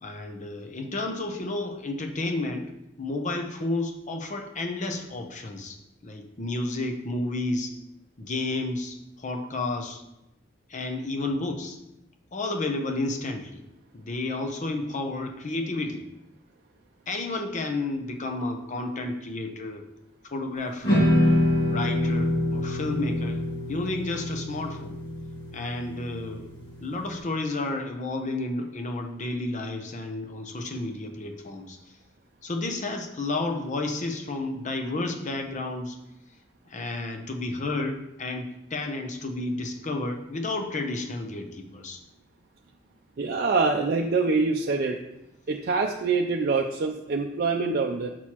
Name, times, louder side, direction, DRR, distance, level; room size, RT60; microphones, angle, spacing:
voice 1, 0.0-2.7 3.0-5.8 6.0-7.7 8.2-10.0 10.7-11.8 12.3-13.6 13.9-16.0 17.1-19.9 20.3-21.2 21.7-25.0 25.5-26.5 26.8-31.8 32.4-36.0 36.7-42.0, left 2 dB, 40° left, 4 dB, 0.8 m, -31 dB
sound 1, 20.8-27.1, left 1 dB, 65° left, 1.9 m, -26 dB
voice 2, 43.2-45.0 45.5-48.1, right 4 dB, 55° right, 1 dB, 0.5 m, -25 dB
6.3 x 5.9 x 3.0 m, 0.87 s
head